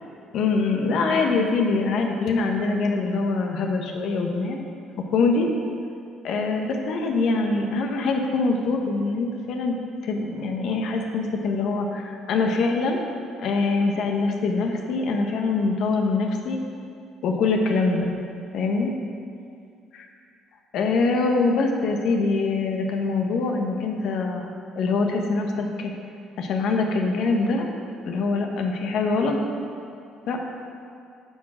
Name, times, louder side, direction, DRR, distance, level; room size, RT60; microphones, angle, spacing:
voice 1, 0.3-4.6 5.0-5.5 6.2-9.8 10.0-13.0 13.4-16.6 17.2-18.1 18.5-18.9 19.9-20.1 20.7-25.9 26.4-27.7 28.0-29.4 30.3-30.4, left 3 dB, 65° left, 2 dB, 1.1 m, -24 dB
9.3 x 6.4 x 6.2 m, 2.4 s
cardioid pair, 120°, 0 cm